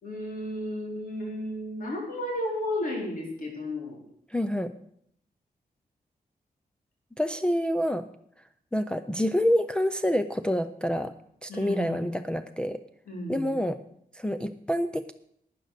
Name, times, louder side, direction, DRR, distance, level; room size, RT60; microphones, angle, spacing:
voice 1, 0.0-4.0 11.5-12.1 13.1-13.5, left 1 dB, 65° left, 0 dB, 4.0 m, -33 dB
voice 2, 4.3-4.7 7.2-8.1 8.7-11.1 11.4-12.8 13.3-13.8 14.1-15.1, equal, 5° left, 7 dB, 0.4 m, -27 dB
12.0 x 9.2 x 6.6 m, 0.69 s
wide cardioid pair, 170°, 15 cm